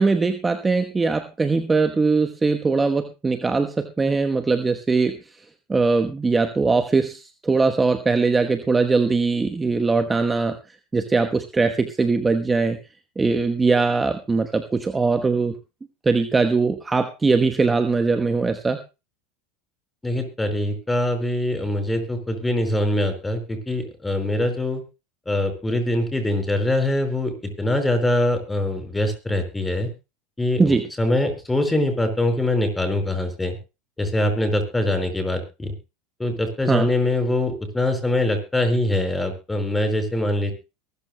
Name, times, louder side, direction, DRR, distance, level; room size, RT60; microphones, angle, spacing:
voice 1, 0.0-5.2 5.7-10.6 10.9-12.8 13.2-15.5 16.0-18.8 30.6-30.8 36.7-36.9, right 4 dB, 15° right, 6 dB, 1.1 m, -21 dB
voice 2, 20.0-24.8 25.3-29.9 30.4-33.6 34.0-35.7 36.2-40.5, left 1 dB, 10° left, 6 dB, 4.7 m, -23 dB
23.0 x 14.0 x 2.2 m, 0.29 s
supercardioid pair, 115°, 0 cm